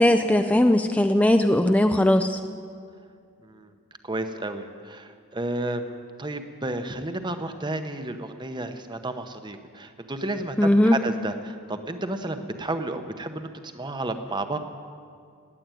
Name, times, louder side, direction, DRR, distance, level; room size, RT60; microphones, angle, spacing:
voice 1, 0.0-2.4 10.6-11.0, left 1 dB, 5° left, 7 dB, 0.4 m, -19 dB
voice 2, 4.0-14.6, right 2 dB, 20° right, 8 dB, 0.8 m, -32 dB
18.5 x 8.5 x 9.1 m, 2.2 s
head